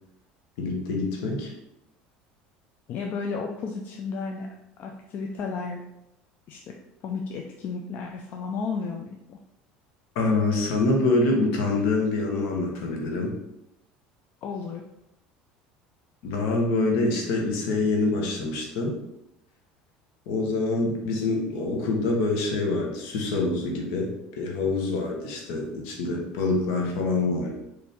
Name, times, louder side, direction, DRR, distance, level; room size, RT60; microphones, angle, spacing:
voice 1, 0.6-1.5 10.1-13.3 16.2-18.9 20.3-24.1 24.4-27.5, left 3 dB, 75° left, 0 dB, 1.1 m, -25 dB
voice 2, 2.9-4.5 4.8-5.8 6.5-6.7 7.0-9.4 14.4-14.8, left 5 dB, 50° left, 2 dB, 0.4 m, -33 dB
4.2 x 2.7 x 3.5 m, 0.86 s
supercardioid pair, 95°, 4 cm